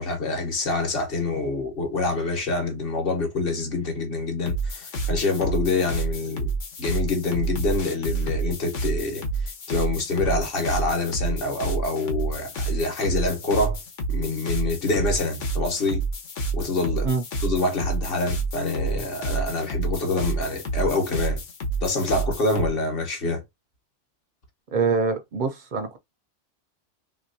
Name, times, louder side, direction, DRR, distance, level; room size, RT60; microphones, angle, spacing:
voice 1, 0.0-6.5 6.8-9.2 9.7-13.8 14.1-16.0 16.5-17.1 17.4-21.4 21.8-23.4, left 3 dB, 55° left, 1.2 m, -26 dB
sound 1, 4.5-22.7, right 3 dB, 85° left, 1.3 m, -29 dB
voice 2, 24.7-26.0, right 5 dB, 55° right, 0.5 m, -24 dB
3.4 x 2.9 x 2.7 m
omnidirectional pair, 1.2 m